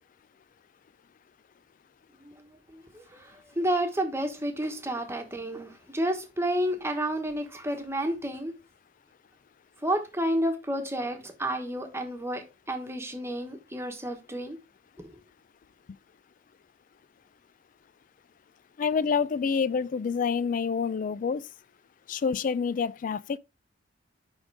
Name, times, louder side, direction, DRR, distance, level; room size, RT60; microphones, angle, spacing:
voice 1, 2.7-8.5 9.8-14.6, right 1 dB, 15° right, 1.2 m, -31 dB
voice 2, 18.8-21.5 22.1-23.4, left 6 dB, 45° left, 0.3 m, -27 dB
10.5 x 3.7 x 3.4 m
head